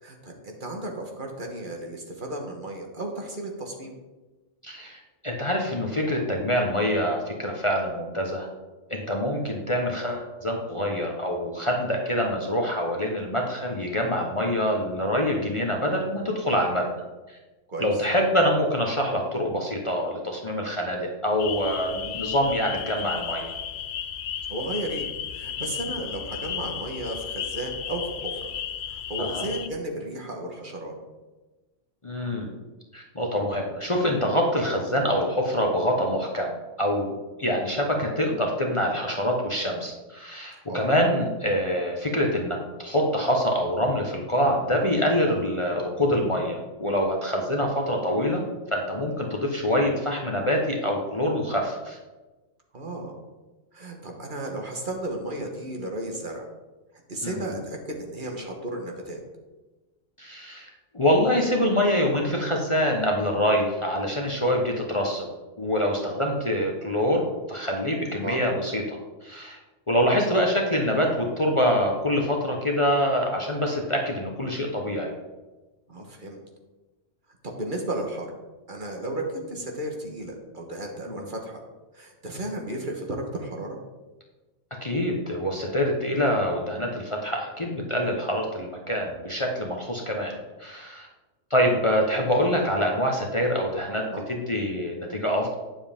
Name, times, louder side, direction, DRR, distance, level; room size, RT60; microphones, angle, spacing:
voice 1, 0.0-3.9 17.7-18.0 24.5-25.1 25.3-28.5 28.9-30.9 40.7-40.8 52.7-53.2 53.7-56.4 57.1-59.2 68.2-68.4 75.9-76.4 77.6-78.3 78.7-81.6 81.9-83.8 94.1-94.2, right 1 dB, 45° right, 1 dB, 1.3 m, -34 dB
voice 2, 4.6-8.5 8.9-16.9 17.3-17.4 17.8-23.5 29.2-29.5 32.0-32.5 32.9-36.5 36.8-48.4 48.7-52.0 57.2-57.4 60.2-60.7 60.9-65.3 65.6-69.6 69.9-75.1 81.1-81.3 84.8-91.1 91.5-95.5, equal, 30° left, 0 dB, 0.9 m, -25 dB
sound 1, 21.4-29.7, left 9 dB, 65° left, 0.8 m, -34 dB
9.5 x 7.3 x 3.5 m, 1.2 s
omnidirectional pair, 1.3 m